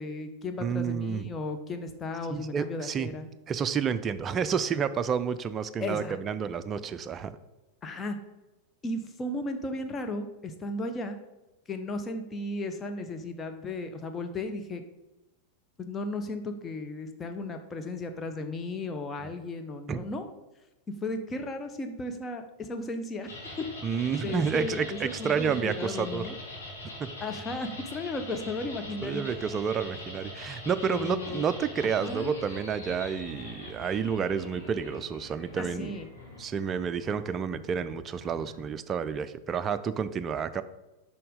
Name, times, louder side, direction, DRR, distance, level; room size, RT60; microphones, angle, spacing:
voice 1, 0.0-3.3 5.8-6.2 7.8-8.2 8.8-11.2 11.7-14.8 15.8-20.2 21.0-23.7 24.2-26.4 27.2-29.2 30.9-31.5 32.0-32.3 35.6-36.1, left 2 dB, 20° left, 6 dB, 0.8 m, -35 dB
voice 2, 0.6-1.3 2.3-3.1 3.5-7.3 19.9-20.0 23.8-26.3 27.0-27.1 29.0-36.0 36.4-40.6, right 6 dB, 25° right, 13 dB, 0.4 m, -30 dB
sound 1, 23.2-38.8, left 2 dB, 70° left, 2.0 m, -43 dB
6.8 x 5.1 x 3.7 m, 1.0 s
figure-of-eight pair, 90°, 0 cm